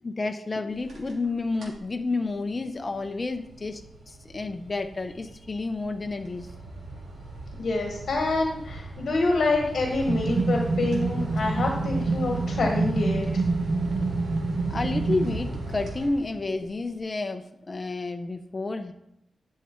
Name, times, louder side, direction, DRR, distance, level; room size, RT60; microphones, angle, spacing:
voice 1, 0.0-6.5 14.7-18.9, left 3 dB, 25° left, 6 dB, 0.6 m, -30 dB
sound 1, 0.7-1.3 1.5-1.9 2.3-16.6, right 2 dB, 85° right, 2.9 m, -37 dB
voice 2, 7.6-13.3, left 3 dB, 60° left, 1 dB, 1.2 m, -26 dB
sound 2, 10.1-15.4, right 3 dB, 50° right, 0.7 m, -27 dB
10.5 x 6.7 x 4.4 m, 0.79 s
wide cardioid pair, 160°, 0 cm